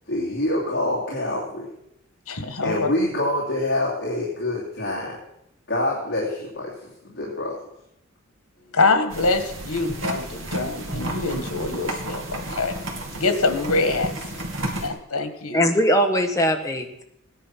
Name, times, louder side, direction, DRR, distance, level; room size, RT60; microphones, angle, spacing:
voice 1, 0.1-1.7 2.6-5.2 5.7-6.7 7.1-7.6, left 1 dB, 50° left, -4 dB, 2.7 m, -25 dB
voice 2, 2.3-2.9 8.7-12.8 13.2-14.1 14.8-15.6, left 3 dB, 85° left, 9 dB, 1.7 m, -24 dB
sound 1, 9.1-14.9, right 1 dB, 60° right, 2.3 m, -32 dB
voice 3, 15.5-17.0, equal, 15° left, 4 dB, 1.1 m, -20 dB
16.5 x 10.0 x 5.9 m, 0.79 s
head